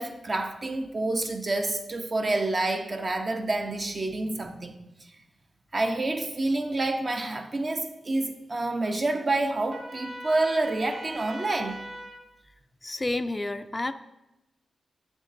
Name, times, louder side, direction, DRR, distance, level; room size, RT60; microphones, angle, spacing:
voice 1, 0.0-4.7 5.7-11.8, right 2 dB, 50° right, 5 dB, 0.8 m, -28 dB
Trumpet, 9.7-12.2, right 1 dB, 75° right, 1.6 m, -41 dB
voice 2, 12.8-13.9, left 2 dB, 30° left, 11 dB, 0.3 m, -30 dB
7.4 x 7.1 x 2.7 m, 0.92 s
cardioid pair, 50°, 0 cm